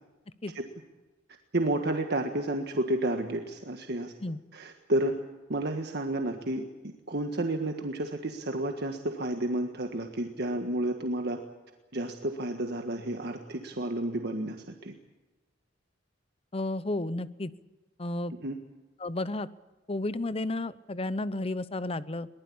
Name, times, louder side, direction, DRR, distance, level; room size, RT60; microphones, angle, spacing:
voice 1, 1.5-4.1 4.5-5.1 5.5-6.6 7.1-11.4 11.9-14.6 14.8-14.9 18.4-18.6, right 1 dB, 60° right, 4 dB, 1.6 m, -31 dB
voice 2, 16.5-17.5 18.0-18.3 19.0-19.5 19.9-22.3, left 2 dB, 30° left, 16 dB, 0.8 m, -32 dB
22.5 x 20.0 x 8.7 m, 1.2 s
head